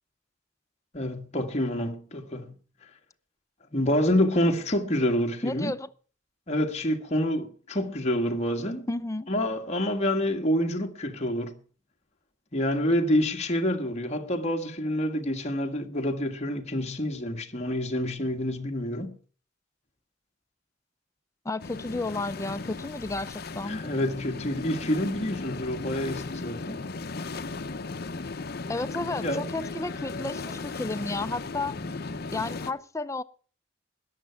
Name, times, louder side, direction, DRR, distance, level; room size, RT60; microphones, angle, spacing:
voice 1, 0.9-2.6 3.7-5.7 6.5-8.9 9.3-11.6 12.5-19.2 23.7-26.9 29.2-29.5, left 1 dB, 35° left, 1.6 m, -27 dB
voice 2, 5.4-5.9 8.9-9.3 21.4-23.8 28.7-31.8 32.3-33.2, left 2 dB, 15° left, 0.6 m, -32 dB
sound 1, 21.6-32.7, left 3 dB, 55° left, 0.8 m, -36 dB
14.0 x 10.5 x 5.7 m
head